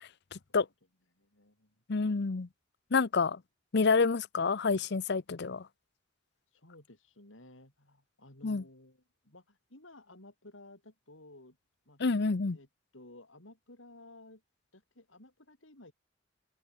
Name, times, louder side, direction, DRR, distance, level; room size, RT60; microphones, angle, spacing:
voice 1, 0.0-0.7 1.9-2.5 2.9-3.4 3.7-5.7 8.4-8.6 12.0-12.6, left 4 dB, 60° left, 0.7 m, -28 dB
voice 2, 1.2-1.7 6.5-11.6 11.9-12.0 12.5-12.7 12.9-14.4 14.7-15.9, left 2 dB, 80° left, 5.4 m, -55 dB
head